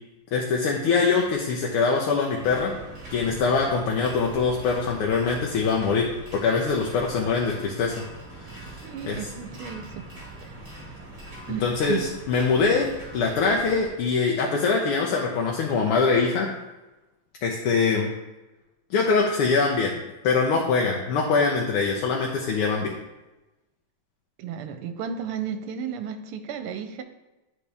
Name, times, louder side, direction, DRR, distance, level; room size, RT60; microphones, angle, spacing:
voice 1, 0.3-2.7 3.1-7.9 9.0-9.2 11.6-12.0 12.3-16.5 17.4-18.1 18.9-19.9 20.2-22.9, left 4 dB, 85° left, -1 dB, 1.7 m, -23 dB
sound 1, 2.4-13.9, right 2 dB, 40° right, 2.1 m, -42 dB
voice 2, 8.8-10.1 10.4-10.6 11.5-12.1 24.4-27.0, right 7 dB, 85° right, 8 dB, 1.6 m, -33 dB
10.0 x 4.1 x 3.4 m, 1.0 s
omnidirectional pair, 2.4 m